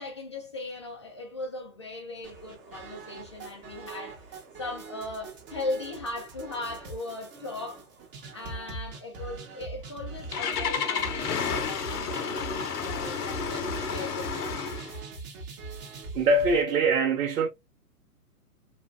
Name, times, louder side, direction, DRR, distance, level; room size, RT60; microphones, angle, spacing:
voice 1, 0.0-7.9 8.3-11.3 11.6-14.6, left 2 dB, 20° left, 0.3 m, -38 dB
sound 1, 2.2-16.6, right 4 dB, 30° right, 1.0 m, -42 dB
Engine starting, 9.8-15.0, left 6 dB, 85° left, 0.8 m, -31 dB
voice 2, 16.1-17.5, right 3 dB, 75° right, 0.9 m, -23 dB
3.0 x 2.6 x 2.5 m
hypercardioid pair, 135°, 45 cm